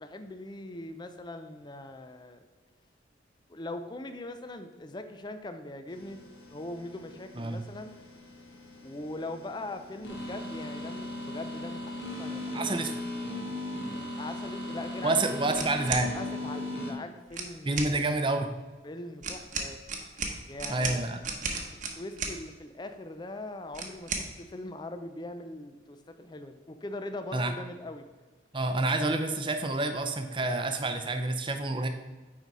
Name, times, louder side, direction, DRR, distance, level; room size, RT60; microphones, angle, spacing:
voice 1, 0.0-2.4 3.5-7.9 8.8-12.9 13.9-15.7 16.1-18.0 18.8-19.8 20.5-21.0 22.0-28.0, left 2 dB, 25° left, 8 dB, 0.4 m, -41 dB
sound 1, 5.9-16.9, left 1 dB, 65° left, 1.6 m, -38 dB
voice 2, 7.4-7.7 12.5-12.9 15.0-16.1 17.7-18.5 20.7-21.2 27.3-27.5 28.5-31.9, right 2 dB, 25° right, 7 dB, 0.6 m, -28 dB
sound 2, 15.5-16.1 17.3-17.9 19.2-22.4 23.7-24.3, right 4 dB, 40° right, 1.0 m, -34 dB
9.4 x 4.1 x 4.7 m, 1.3 s
head